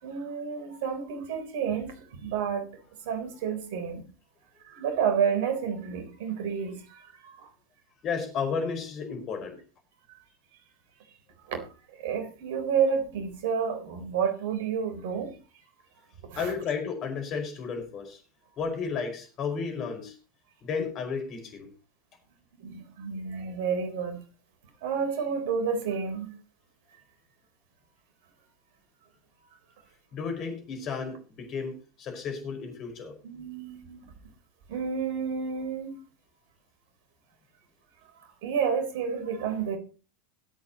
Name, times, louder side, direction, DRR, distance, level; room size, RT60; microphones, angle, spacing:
voice 1, 0.0-2.6 3.0-4.0 4.6-7.5 11.5-11.6 12.0-15.3 16.2-16.5 22.6-24.2 24.8-26.3 33.2-34.1 34.7-36.0 38.4-39.8, right 6 dB, 60° right, 3.7 m, -30 dB
voice 2, 8.0-9.6 16.4-18.2 18.6-20.1 20.6-21.7 30.1-33.1, left 5 dB, 40° left, 5.0 m, -33 dB
22.5 x 8.7 x 3.0 m
figure-of-eight pair, 85°, 0 cm